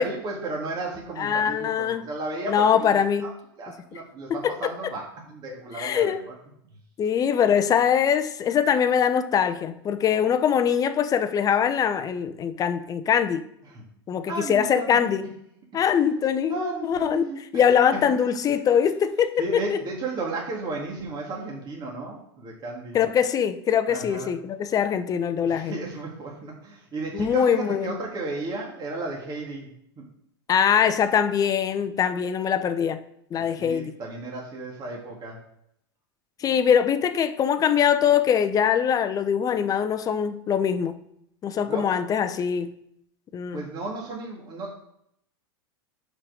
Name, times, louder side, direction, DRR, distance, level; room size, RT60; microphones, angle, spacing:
voice 1, 0.0-2.9 3.2-3.3 3.6-6.3 13.7-13.8 14.3-15.1 16.5-17.4 19.4-23.0 23.9-24.4 25.5-29.7 30.0-30.1 33.3-35.4 41.7-41.9 43.5-44.7, right 3 dB, 30° right, 2.0 m, -34 dB
voice 2, 1.2-2.1 2.5-3.3 4.3-4.7 5.5-6.2 7.0-13.4 14.1-15.3 15.7-17.2 17.5-19.8 22.9-25.7 27.1-27.9 30.5-33.0 33.3-33.9 36.4-41.0 41.4-42.7 43.3-43.6, left 8 dB, 25° left, 0.7 m, -23 dB
5.6 x 5.3 x 6.3 m
hypercardioid pair, 105°, 13 cm